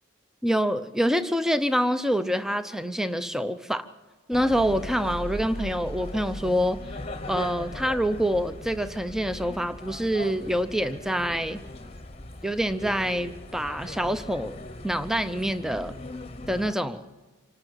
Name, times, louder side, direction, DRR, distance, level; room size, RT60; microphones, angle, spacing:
voice 1, 0.4-3.9 4.3-6.8 7.3-11.6 12.4-14.6 14.8-15.9 16.5-17.0, equal, ahead, 11 dB, 0.6 m, -26 dB
sound 1, 4.3-16.7, left 1 dB, 25° left, 1.0 m, -39 dB
26.0 x 12.5 x 9.0 m, 1.2 s
head